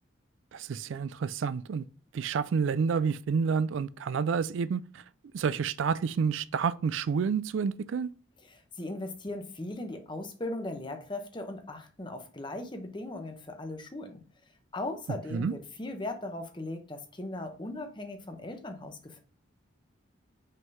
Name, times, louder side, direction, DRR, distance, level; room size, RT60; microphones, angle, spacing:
voice 1, 0.5-1.8 2.1-5.0 5.3-8.1 15.3-15.5, right 6 dB, 70° right, 0.3 m, -29 dB
voice 2, 8.5-14.2 14.7-19.2, left 2 dB, 25° left, 0.8 m, -38 dB
5.5 x 3.7 x 5.3 m
head